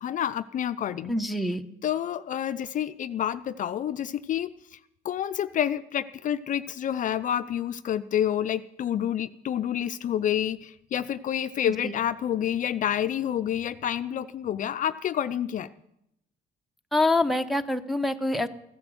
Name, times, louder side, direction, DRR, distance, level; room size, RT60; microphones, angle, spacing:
voice 1, 0.0-1.1 1.8-4.8 5.0-15.7, left 10 dB, 50° left, 12 dB, 0.6 m, -28 dB
voice 2, 1.1-1.6 11.6-12.0 16.9-18.5, left 2 dB, ahead, 5 dB, 0.9 m, -25 dB
15.0 x 10.5 x 7.9 m, 0.81 s
cardioid pair, 110°, 17 cm